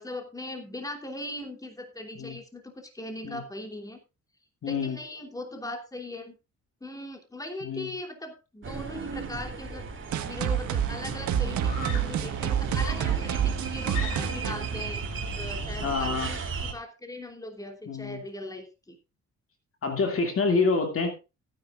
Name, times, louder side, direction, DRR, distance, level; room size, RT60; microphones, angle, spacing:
voice 1, 0.0-4.0 4.6-6.4 6.8-9.9 10.2-15.0 15.3-19.0, left 1 dB, 10° left, 4 dB, 3.0 m, -39 dB
voice 2, 4.6-5.0 7.6-7.9 15.8-16.3 17.9-18.2 19.8-21.1, left 4 dB, 45° left, 5 dB, 2.4 m, -27 dB
sound 1, 8.6-16.7, right 4 dB, 40° right, 3.2 m, -35 dB
sound 2, 10.1-15.6, right 9 dB, 70° right, 1.6 m, -29 dB
Screaming, 10.5-10.6 11.6-12.3 12.8-14.6, left 3 dB, 85° left, 4.3 m, -40 dB
17.0 x 10.0 x 2.5 m, 0.28 s
cardioid pair, 90°, 30 cm